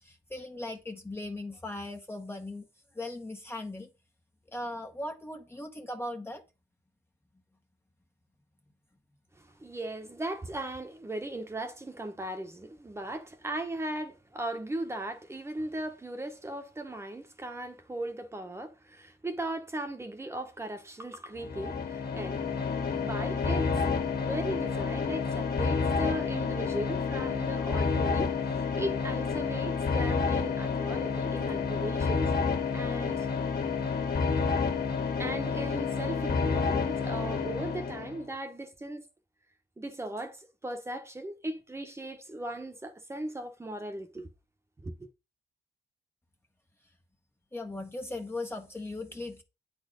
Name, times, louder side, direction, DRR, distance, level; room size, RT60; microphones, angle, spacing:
voice 1, 0.0-2.6 2.9-3.9 4.5-6.4 47.5-49.4, left 2 dB, 15° left, 1.0 m, -38 dB
voice 2, 9.6-22.4 22.9-23.7 24.2-28.3 28.8-32.3 32.7-33.3 35.2-39.0 39.8-40.4 40.6-44.3 44.8-44.9, right 1 dB, 15° right, 1.2 m, -37 dB
sound 1, 21.4-38.2, left 5 dB, 60° left, 2.0 m, -29 dB
9.4 x 4.4 x 5.3 m
cardioid pair, 145°, 18 cm